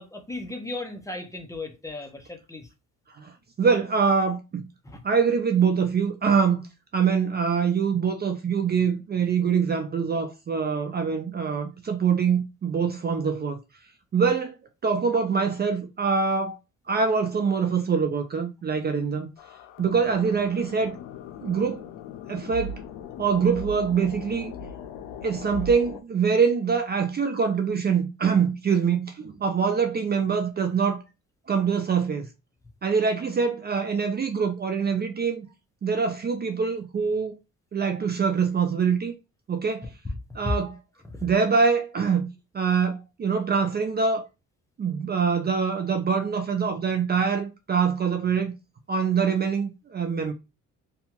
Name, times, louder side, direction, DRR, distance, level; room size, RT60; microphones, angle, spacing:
voice 1, 0.0-2.7 4.8-5.0 41.1-41.3, left 2 dB, 10° left, 0.7 m, -37 dB
voice 2, 3.6-4.6 5.0-6.6 6.9-13.6 14.1-14.6 14.8-16.6 16.9-19.3 19.8-21.0 21.4-21.9 22.3-22.8 23.2-24.5 25.2-31.0 31.5-32.3 32.8-35.5 35.8-37.3 37.7-39.1 39.5-39.9 40.4-40.7 41.2-42.3 42.5-44.2 44.8-48.5 48.9-50.3, right 6 dB, 35° right, 0.4 m, -24 dB
sound 1, 19.4-26.0, left 4 dB, 90° left, 0.5 m, -39 dB
2.7 x 2.3 x 2.8 m
cardioid pair, 90°, 30 cm